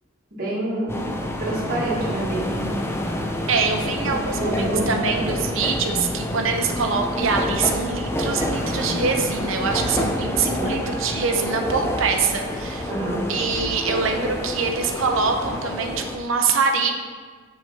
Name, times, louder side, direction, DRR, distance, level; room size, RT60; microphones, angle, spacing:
voice 1, 0.3-2.7 4.4-5.2 10.5-10.7 12.9-13.3, right 1 dB, 45° right, -6 dB, 1.5 m, -27 dB
sound 1, 0.9-16.2, left 1 dB, 10° left, 0.4 m, -28 dB
voice 2, 3.5-12.9 13.3-16.9, right 4 dB, 65° right, 4 dB, 0.7 m, -24 dB
sound 2, 8.5-15.7, left 1 dB, 60° left, 1.0 m, -40 dB
7.1 x 5.0 x 2.8 m, 1.5 s
head